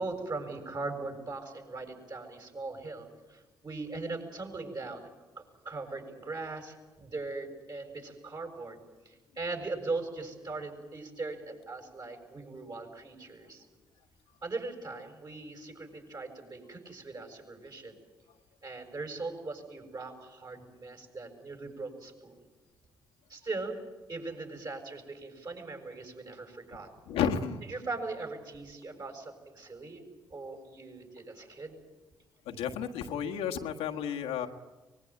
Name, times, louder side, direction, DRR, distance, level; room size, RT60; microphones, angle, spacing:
voice 1, 0.0-5.1 5.4-13.7 14.4-17.9 18.6-22.4 23.3-23.8 24.1-26.9 27.6-30.0 30.3-31.8, right 3 dB, 40° right, 4 dB, 7.0 m, -40 dB
voice 2, 27.1-27.6 32.5-34.5, left 8 dB, 75° left, 3 dB, 1.6 m, -32 dB
24.0 x 20.5 x 8.9 m, 1.2 s
hypercardioid pair, 45°, 10 cm